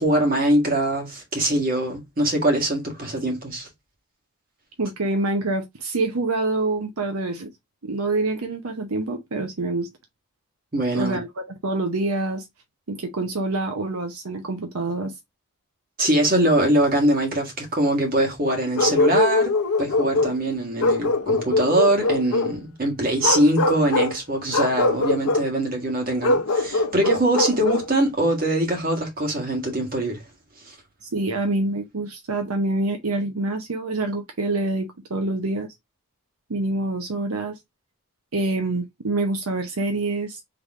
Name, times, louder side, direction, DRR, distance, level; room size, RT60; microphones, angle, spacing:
voice 1, 0.0-3.7 10.7-11.2 16.0-19.5 19.8-30.2 30.7-30.8, right 1 dB, 40° right, 1.7 m, -22 dB
voice 2, 4.8-7.5 7.8-9.9 10.9-12.5 12.9-15.1 31.1-35.7 36.5-37.6 38.3-40.4, right 2 dB, 80° right, 0.8 m, -26 dB
Bark, 18.8-20.4 20.8-22.5 23.2-24.2 24.5-25.5 26.2-27.9, left 2 dB, 80° left, 0.8 m, -22 dB
3.9 x 3.4 x 3.5 m
head